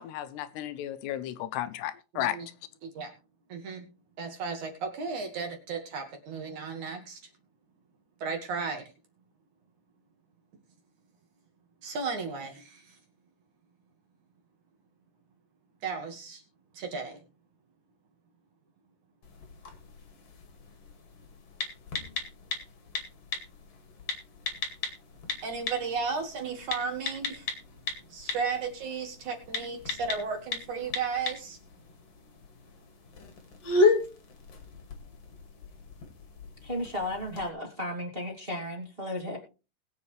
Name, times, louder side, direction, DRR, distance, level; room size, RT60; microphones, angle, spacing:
voice 1, 0.0-2.4, left 12 dB, 80° left, 2.8 m, -33 dB
voice 2, 2.1-2.5 2.8-3.1 3.5-3.9 4.2-7.2 8.2-8.8 11.8-13.0 15.8-16.4 16.7-17.2 25.4-27.5 28.1-31.6, right 5 dB, 55° right, 2.8 m, -34 dB
sound 1, 19.2-37.5, left 3 dB, 45° left, 2.6 m, -35 dB
voice 3, 36.6-39.4, left 1 dB, 20° right, 2.0 m, -34 dB
20.5 x 8.1 x 3.3 m
omnidirectional pair, 4.9 m